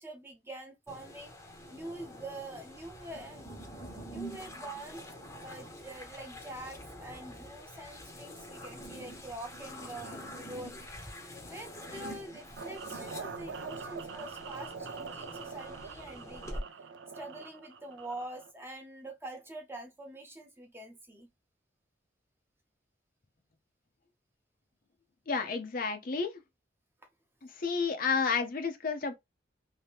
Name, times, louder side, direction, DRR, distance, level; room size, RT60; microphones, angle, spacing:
voice 1, 0.0-1.3 1.7-3.6 4.1-5.0 5.4-10.8 11.5-16.6 17.1-21.3, right 1 dB, 15° right, 0.7 m, -45 dB
sound 1, 0.9-16.6, equal, 15° left, 0.8 m, -46 dB
sound 2, 12.6-18.5, right 5 dB, 75° right, 0.4 m, -44 dB
voice 2, 25.3-26.4 27.4-29.1, left 5 dB, 50° left, 0.6 m, -31 dB
2.8 x 2.7 x 3.3 m
head